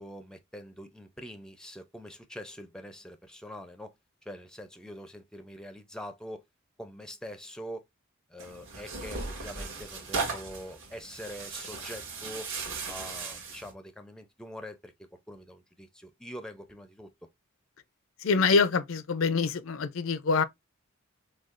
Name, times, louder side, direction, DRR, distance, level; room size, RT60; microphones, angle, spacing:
voice 1, 0.0-3.9 4.3-6.4 6.8-7.8 8.3-12.5 12.9-17.1, equal, 5° left, 0.5 m, -44 dB
Tearing, 8.4-13.7, right 4 dB, 65° right, 1.9 m, -37 dB
voice 2, 18.2-20.4, left 4 dB, 70° left, 0.5 m, -25 dB
6.2 x 2.3 x 2.5 m
head